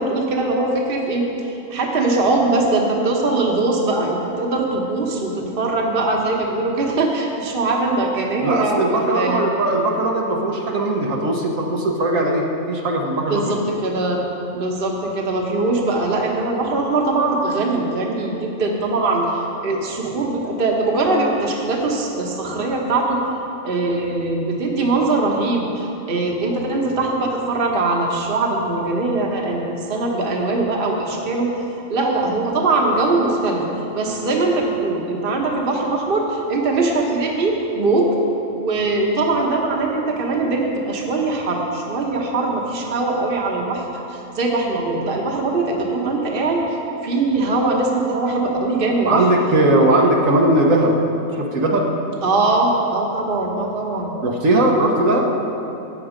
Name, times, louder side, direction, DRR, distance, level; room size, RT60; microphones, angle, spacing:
voice 1, 0.0-9.4 13.3-14.2 14.5-23.2 23.6-31.5 31.9-33.6 33.9-38.2 38.5-46.8 47.0-49.3 52.2-54.1, right 2 dB, 45° right, 0 dB, 1.3 m, -21 dB
voice 2, 8.4-13.5 49.0-51.0 51.3-51.9 54.2-55.3, right 1 dB, 75° right, 0 dB, 1.6 m, -19 dB
13.0 x 8.5 x 5.1 m, 3.0 s
omnidirectional pair, 1.4 m